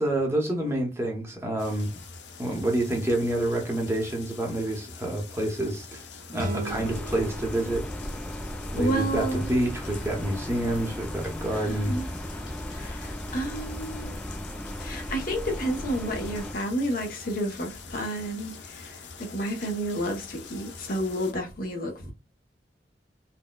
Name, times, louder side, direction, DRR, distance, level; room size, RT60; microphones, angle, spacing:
voice 1, 0.0-1.9 2.4-6.0 6.3-7.9 8.7-12.0, right 1 dB, 15° right, 0.8 m, -28 dB
sound 1, 1.6-21.3, left 4 dB, 80° left, 0.6 m, -45 dB
sound 2, 6.3-9.4, right 1 dB, 50° right, 0.6 m, -38 dB
sound 3, 6.7-16.5, equal, 5° left, 0.4 m, -36 dB
voice 2, 8.8-9.5 11.5-12.1 12.7-14.2 14.8-22.1, right 1 dB, 55° left, 0.9 m, -31 dB
4.1 x 2.1 x 2.2 m
head